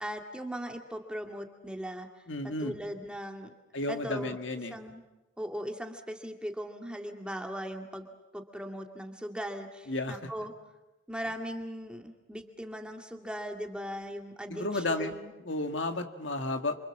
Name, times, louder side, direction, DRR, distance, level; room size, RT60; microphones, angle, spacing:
voice 1, 0.0-2.1 2.4-3.5 3.9-4.4 4.7-5.0 5.4-10.5 11.1-15.3, equal, 5° right, 3 dB, 2.2 m, -39 dB
voice 2, 2.3-2.7 3.7-4.8 9.9-10.2 14.5-15.1 15.4-16.7, left 2 dB, 75° left, 6 dB, 2.0 m, -32 dB
28.0 x 26.0 x 7.4 m, 1.1 s
head